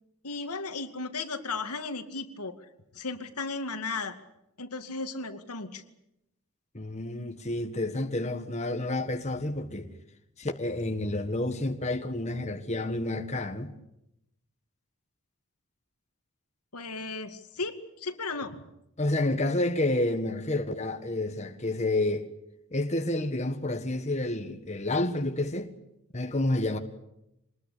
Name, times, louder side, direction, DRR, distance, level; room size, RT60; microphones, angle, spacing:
voice 1, 0.2-2.6 2.9-4.1 4.6-5.8 16.7-18.6, left 3 dB, 90° left, 2.3 m, -35 dB
voice 2, 6.7-9.9 10.4-13.7 19.0-22.3 22.7-25.7 26.1-26.8, left 2 dB, 30° left, 1.6 m, -29 dB
25.0 x 20.0 x 8.6 m
head